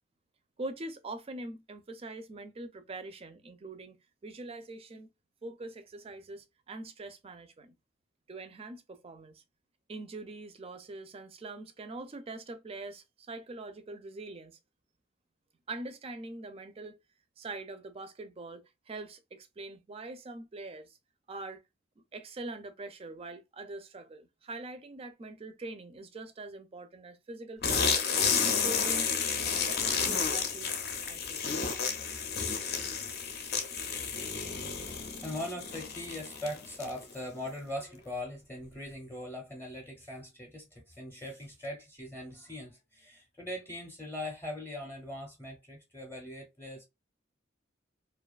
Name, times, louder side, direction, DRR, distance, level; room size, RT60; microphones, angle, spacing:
voice 1, 0.6-5.1 5.4-7.7 8.3-9.4 9.9-14.6 15.7-17.0 17.4-21.0 21.3-21.6 22.1-28.1 28.4-29.1 29.5-30.8 31.1-31.6, right 2 dB, 30° right, 0.4 m, -43 dB
sound 1, 27.6-37.1, left 6 dB, 55° left, 0.5 m, -31 dB
voice 2, 34.4-46.8, left 1 dB, 15° left, 0.6 m, -41 dB
2.5 x 2.3 x 2.3 m
head